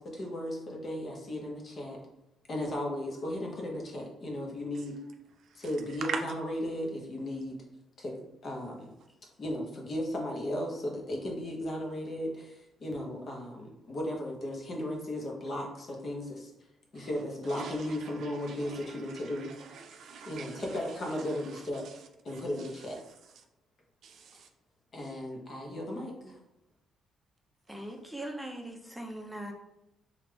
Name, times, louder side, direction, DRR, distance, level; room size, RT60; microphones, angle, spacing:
voice 1, 0.0-2.0 2.5-5.0 5.5-7.6 8.0-8.9 9.4-16.5 16.9-19.5 20.2-21.9 22.2-23.0 24.9-26.4, left 1 dB, 45° left, 1.0 m, -36 dB
voice 2, 5.4-5.7 6.1-6.2 16.9-22.0 22.3-22.9 24.0-24.5, right 6 dB, 70° right, 0.5 m, -44 dB
voice 3, 27.7-29.5, right 1 dB, 5° right, 0.6 m, -40 dB
3.2 x 2.5 x 3.3 m
cardioid pair, 90°, 0 cm